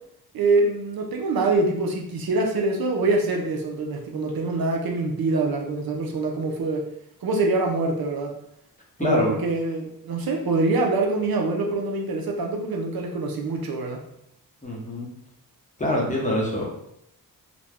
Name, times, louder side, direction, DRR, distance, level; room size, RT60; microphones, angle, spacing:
voice 1, 0.3-6.9 7.2-8.3 9.0-14.0, right 3 dB, 70° right, 1 dB, 0.5 m, -24 dB
voice 2, 9.0-9.3 14.6-15.1 15.8-16.9, left 1 dB, 20° left, -3 dB, 0.7 m, -25 dB
2.5 x 2.1 x 3.3 m, 0.75 s
wide cardioid pair, 110°, 38 cm